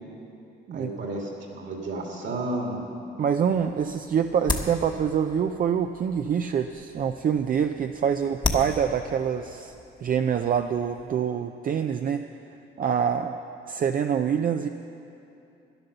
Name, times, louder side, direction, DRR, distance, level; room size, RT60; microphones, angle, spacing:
voice 1, 0.7-2.8, right 2 dB, 65° right, 0 dB, 2.5 m, -32 dB
voice 2, 3.2-9.7 10.0-12.2 12.8-13.4 13.7-14.7, right 7 dB, 45° right, 6 dB, 0.5 m, -25 dB
sound 1, 3.4-11.1, left 2 dB, 20° left, 1.2 m, -36 dB
12.0 x 10.5 x 6.7 m, 2.7 s
cardioid pair, 90°, 20 cm